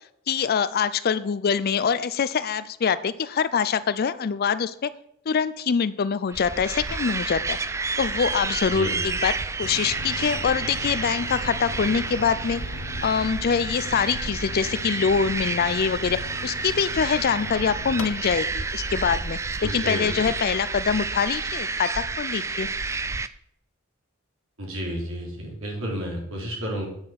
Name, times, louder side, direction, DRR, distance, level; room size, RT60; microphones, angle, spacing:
voice 1, 0.3-4.9 5.3-7.6 8.0-12.6 13.0-22.7, left 6 dB, 50° left, 15 dB, 0.4 m, -24 dB
sound 1, 6.3-23.3, right 4 dB, 15° right, 0.3 m, -30 dB
sound 2, 9.6-18.5, left 2 dB, 75° left, 0.8 m, -39 dB
voice 2, 19.6-20.2 24.6-26.9, equal, 70° right, -1 dB, 3.4 m, -31 dB
8.8 x 6.3 x 5.8 m, 0.69 s
head